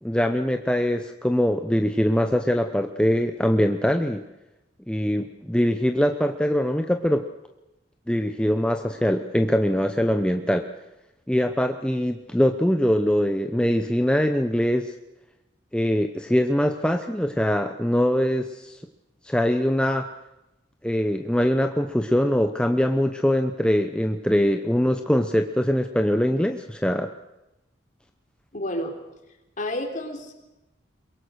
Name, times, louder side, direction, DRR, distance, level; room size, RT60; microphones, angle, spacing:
voice 1, 0.0-4.2 4.9-7.3 8.1-10.7 11.3-14.9 15.7-18.8 19.2-20.1 20.8-27.1, equal, 5° left, 6 dB, 0.8 m, -22 dB
voice 2, 28.5-29.0 29.6-30.3, left 1 dB, 45° left, 3 dB, 3.6 m, -30 dB
23.0 x 22.5 x 6.6 m, 0.95 s
head